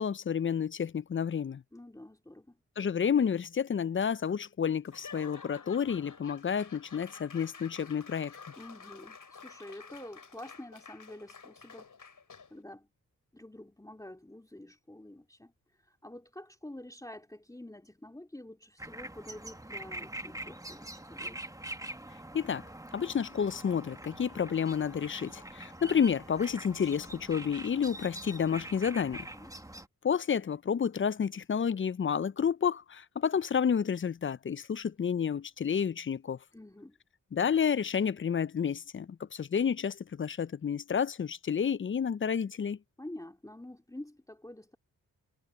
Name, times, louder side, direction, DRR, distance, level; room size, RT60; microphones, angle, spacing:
voice 1, 0.0-1.6 2.8-8.4 22.3-22.7 22.9-29.3 30.0-36.4 37.3-42.8, left 7 dB, 35° left, 0.5 m, -30 dB
voice 2, 1.7-2.6 8.6-11.9 12.5-12.9 13.3-15.5 15.8-21.4 29.3-29.5 36.5-37.0 43.0-44.8, left 1 dB, 10° left, 2.5 m, -48 dB
Laughter / Applause / Crowd, 4.9-12.6, left 5 dB, 60° left, 7.8 m, -50 dB
sound 1, 18.8-29.9, right 1 dB, 10° right, 1.6 m, -44 dB
supercardioid pair, 40°, 37 cm